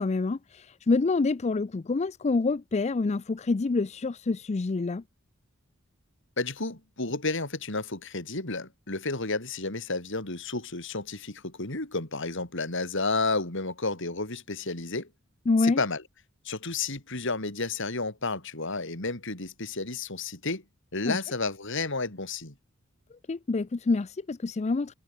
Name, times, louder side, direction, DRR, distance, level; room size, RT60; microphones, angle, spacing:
voice 1, 0.0-5.0 15.5-15.8 21.0-21.2 23.3-24.9, left 3 dB, 30° left, 0.4 m, -27 dB
voice 2, 6.4-15.1 15.6-16.0 16.4-20.6 20.9-22.5, left 3 dB, 65° left, 4.2 m, -31 dB
head